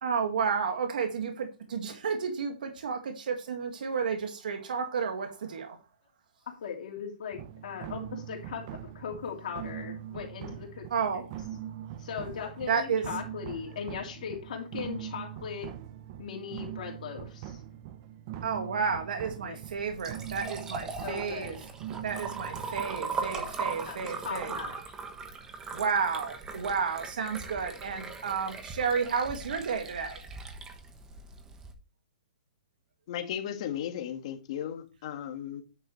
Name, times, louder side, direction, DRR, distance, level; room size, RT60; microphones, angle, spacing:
voice 1, 0.0-5.8 10.9-11.3 12.7-13.0 18.4-21.5 22.0-24.5 25.7-30.2, right 6 dB, 70° right, 1.9 m, -31 dB
voice 2, 6.5-10.8 12.0-15.7 16.2-17.6 19.4-19.6 21.0-21.6 23.9-24.8, left 7 dB, 60° left, 2.9 m, -39 dB
sound 1, 7.3-22.8, right 10 dB, 30° right, 0.8 m, -42 dB
Liquid, 19.7-31.7, right 4 dB, 10° right, 1.1 m, -39 dB
voice 3, 33.1-35.6, left 10 dB, 45° left, 1.7 m, -35 dB
9.9 x 7.3 x 3.2 m
hypercardioid pair, 165°, 5 cm